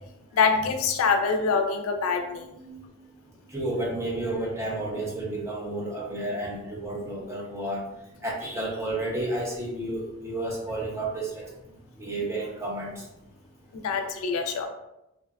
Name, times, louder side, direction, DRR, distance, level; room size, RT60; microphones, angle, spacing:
voice 1, 0.3-2.8 13.7-14.7, left 5 dB, 75° left, 5 dB, 0.3 m, -25 dB
voice 2, 3.5-7.8 8.2-11.5 12.0-13.0, right 1 dB, 15° right, -3 dB, 0.4 m, -31 dB
2.7 x 2.2 x 2.2 m, 0.88 s
head